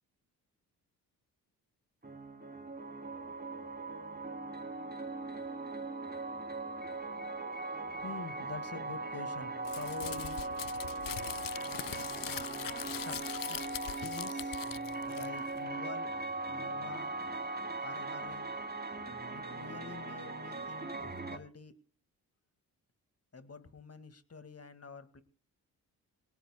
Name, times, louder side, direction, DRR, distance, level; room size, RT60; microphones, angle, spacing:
sound 1, 2.0-21.4, right 2 dB, 25° right, 3.2 m, -39 dB
voice 1, 8.0-10.4 11.8-11.9 12.9-13.2 13.5-13.6 14.0-14.6 15.0-16.1 16.5-17.1 17.8-18.5 19.3-21.7 23.3-25.2, left 4 dB, 35° left, 11 dB, 2.1 m, -47 dB
Crumpling crinkling, 9.6-15.6, left 11 dB, 55° left, 0.7 m, -42 dB
22.0 x 18.5 x 2.3 m, 0.44 s
supercardioid pair, 55°, 40 cm